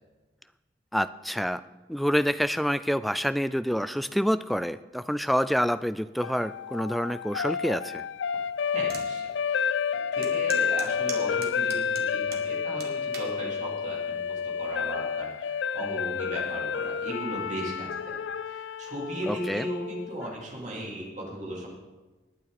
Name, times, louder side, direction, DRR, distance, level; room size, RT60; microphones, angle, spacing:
voice 1, 0.9-1.6 1.9-8.0 19.3-19.7, equal, ahead, 14 dB, 0.3 m, -27 dB
sound 1, 6.2-20.3, left 7 dB, 85° left, 0.4 m, -30 dB
voice 2, 8.7-9.7 10.1-18.2 18.5-21.7, right 1 dB, 45° right, -3 dB, 3.6 m, -37 dB
sound 2, 8.9-9.1 9.6-9.7 10.2-12.5 12.8-13.3 14.0-14.3, right 7 dB, 60° right, 1.8 m, -40 dB
19.5 x 9.1 x 4.2 m, 1.2 s
head